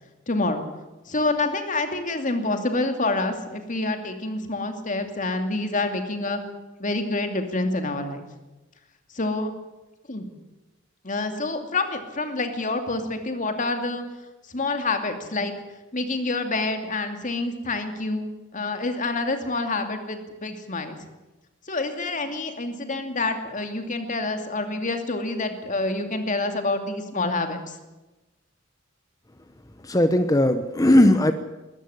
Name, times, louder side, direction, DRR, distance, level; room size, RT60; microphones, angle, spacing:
voice 1, 0.3-0.6 1.1-6.4 6.8-8.2 9.1-9.5 10.1-10.3 11.0-14.0 14.5-15.5 15.9-21.0 21.7-27.8, left 2 dB, 40° left, 6 dB, 2.5 m, -27 dB
voice 2, 29.9-31.3, left 1 dB, 15° left, 9 dB, 1.0 m, -18 dB
21.0 x 13.5 x 10.0 m, 1.1 s
head